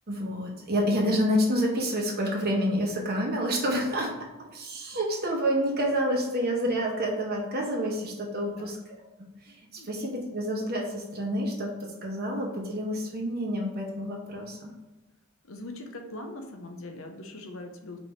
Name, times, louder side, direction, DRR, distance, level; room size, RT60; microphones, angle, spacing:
voice 1, 0.1-8.8 9.4-14.7, equal, 45° right, 0 dB, 1.1 m, -28 dB
voice 2, 15.4-18.0, left 2 dB, 65° left, 4 dB, 0.7 m, -41 dB
5.4 x 2.8 x 3.3 m, 1.1 s
head